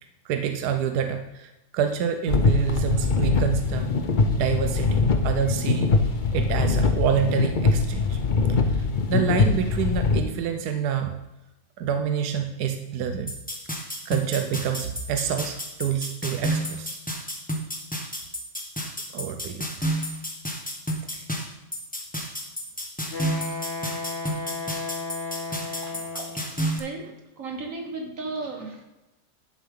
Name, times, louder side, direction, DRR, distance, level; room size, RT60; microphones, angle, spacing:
voice 1, 0.2-3.9 4.3-5.9 6.3-8.2 8.5-11.2 11.8-13.3 14.0-17.0 19.1-19.7 21.1-21.3 25.9-26.4, right 8 dB, 75° right, 6 dB, 1.2 m, -27 dB
sound 1, 2.3-10.2, left 4 dB, 60° left, 0.5 m, -22 dB
sound 2, 13.3-26.8, right 1 dB, 5° left, 0.9 m, -31 dB
Wind instrument woodwind instrument, 23.1-26.6, left 3 dB, 85° left, 3.5 m, -34 dB
voice 2, 25.5-25.9 26.8-27.1 27.4-28.8, right 3 dB, 55° right, 2 dB, 1.5 m, -35 dB
11.5 x 7.1 x 3.7 m, 0.98 s
omnidirectional pair, 1.7 m